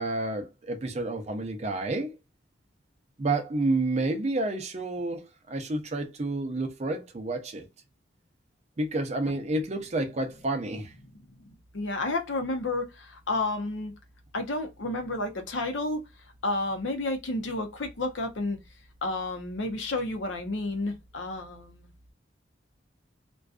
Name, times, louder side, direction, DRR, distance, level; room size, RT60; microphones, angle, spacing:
voice 1, 0.0-2.1 3.2-7.7 8.8-10.9, right 2 dB, 35° right, 0.5 m, -30 dB
voice 2, 11.4-13.9 14.3-16.0 16.4-18.6 19.0-21.9, left 2 dB, 85° left, 0.7 m, -31 dB
2.5 x 2.2 x 2.3 m
head